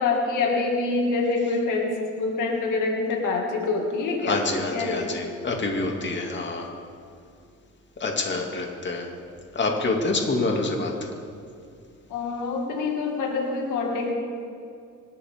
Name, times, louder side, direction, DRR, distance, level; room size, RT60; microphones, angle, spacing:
voice 1, 0.0-4.4 4.7-5.2 12.1-14.1, left 3 dB, 90° left, 1 dB, 2.4 m, -26 dB
voice 2, 4.2-6.7 8.0-9.1 9.5-11.1, left 3 dB, 35° left, 1 dB, 2.6 m, -27 dB
25.5 x 13.0 x 3.7 m, 2.4 s
cardioid pair, 90°, 30 cm